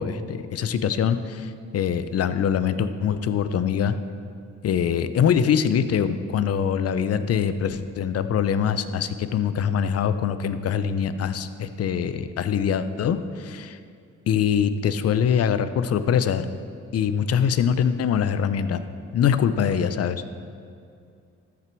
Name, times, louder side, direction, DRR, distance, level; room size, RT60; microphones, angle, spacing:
voice 1, 0.0-4.0 4.6-13.8 14.3-16.5 16.9-18.8 19.1-20.2, left 8 dB, 55° left, 12 dB, 0.6 m, -23 dB
13.5 x 6.0 x 4.5 m, 2.4 s
cardioid pair, 90°, 30 cm